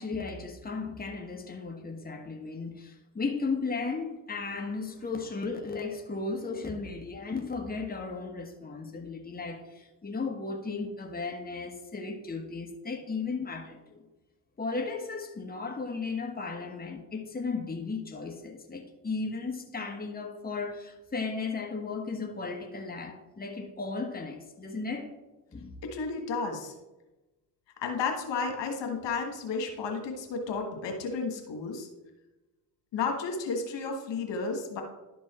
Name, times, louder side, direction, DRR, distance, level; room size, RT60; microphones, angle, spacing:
voice 1, 0.0-14.0 14.6-25.1 25.5-25.7, left 4 dB, 20° left, 1.4 m, -35 dB
voice 2, 25.8-26.7 27.8-31.9 32.9-34.8, left 4 dB, 70° left, 1.6 m, -32 dB
11.5 x 4.6 x 4.3 m
supercardioid pair, 60°, 45 cm